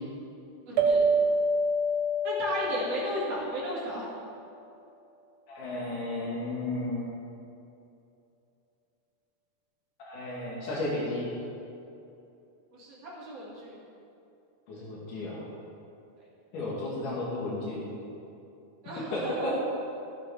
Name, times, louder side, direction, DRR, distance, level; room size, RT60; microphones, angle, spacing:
voice 1, 0.7-1.1 2.2-4.1 12.7-13.8 18.8-19.5, equal, 50° right, -7 dB, 3.1 m, -34 dB
sound 1, 0.8-3.8, right 1 dB, 75° right, 1.6 m, -27 dB
voice 2, 5.5-7.1 10.0-11.3 14.7-15.4 16.5-17.9 19.1-19.5, left 1 dB, 75° left, -5 dB, 3.1 m, -33 dB
14.5 x 9.1 x 3.4 m, 2.7 s
omnidirectional pair, 3.8 m